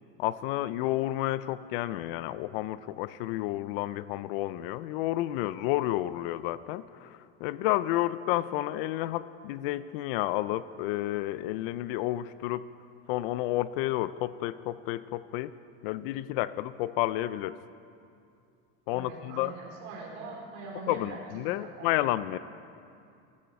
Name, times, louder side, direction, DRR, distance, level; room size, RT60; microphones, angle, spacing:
voice 1, 0.2-12.7 13.1-15.5 15.8-17.6 18.9-19.5 20.9-22.4, left 15 dB, 60° left, 16 dB, 0.5 m, -31 dB
voice 2, 18.9-21.9, right 3 dB, 45° right, -3 dB, 4.2 m, -43 dB
17.0 x 13.0 x 4.7 m, 2.5 s
supercardioid pair, 165°, 33 cm